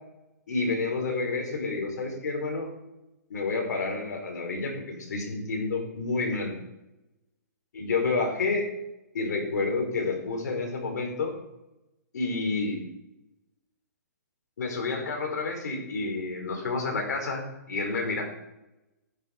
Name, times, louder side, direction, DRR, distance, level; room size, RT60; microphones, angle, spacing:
voice 1, 0.5-2.7 3.3-6.5 7.7-8.7 9.1-11.3 12.1-12.8 14.6-18.2, left 3 dB, 75° left, 2 dB, 4.7 m, -29 dB
11.5 x 10.5 x 5.3 m, 0.94 s
hypercardioid pair, 155°, 9 cm